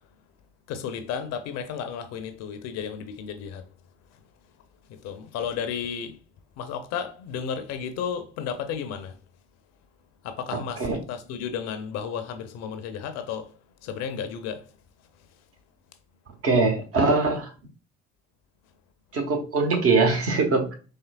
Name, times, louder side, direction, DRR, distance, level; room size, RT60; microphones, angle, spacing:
voice 1, 0.7-3.6 4.9-6.2 6.6-9.2 10.2-13.5 13.8-14.7, left 7 dB, 50° left, 0.6 m, -33 dB
voice 2, 10.5-11.0 16.4-17.5 19.1-20.7, right 3 dB, 45° right, 1.1 m, -22 dB
4.3 x 3.3 x 2.3 m
figure-of-eight pair, 55°, 34 cm